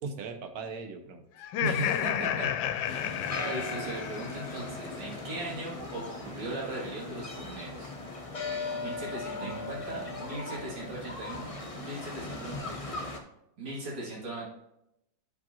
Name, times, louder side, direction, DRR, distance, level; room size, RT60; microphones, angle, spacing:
voice 1, 0.0-1.2 1.6-1.9 9.4-10.1, right 4 dB, 60° right, 6 dB, 1.2 m, -38 dB
Laughter, 1.4-4.6, left 10 dB, 85° left, 1.3 m, -31 dB
voice 2, 1.6-7.9 8.7-13.0 13.6-14.4, right 2 dB, 80° right, -6 dB, 3.2 m, -39 dB
sound 1, 2.8-13.2, left 2 dB, 35° left, 0.5 m, -38 dB
12.0 x 5.1 x 2.9 m, 0.84 s
omnidirectional pair, 2.1 m